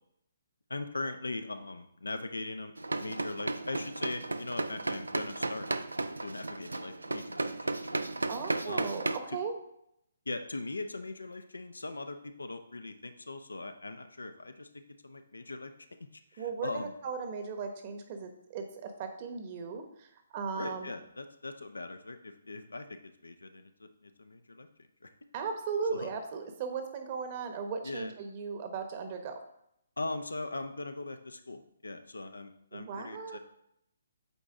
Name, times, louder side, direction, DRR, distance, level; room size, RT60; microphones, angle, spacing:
voice 1, 0.7-2.7 3.0-5.7 6.2-8.0 8.6-8.9 10.3-15.7 16.1-16.9 20.6-24.7 25.0-25.1 25.9-26.1 27.8-28.1 30.0-33.4, left 2 dB, 85° left, 8 dB, 0.7 m, -40 dB
sound 1, 2.8-9.2, right 2 dB, 85° right, 0.4 m, -34 dB
voice 2, 8.3-9.6 16.4-20.9 25.3-29.4 32.7-33.4, right 5 dB, 35° right, 6 dB, 1.1 m, -37 dB
8.2 x 4.2 x 3.7 m, 0.75 s
figure-of-eight pair, 140°, 0 cm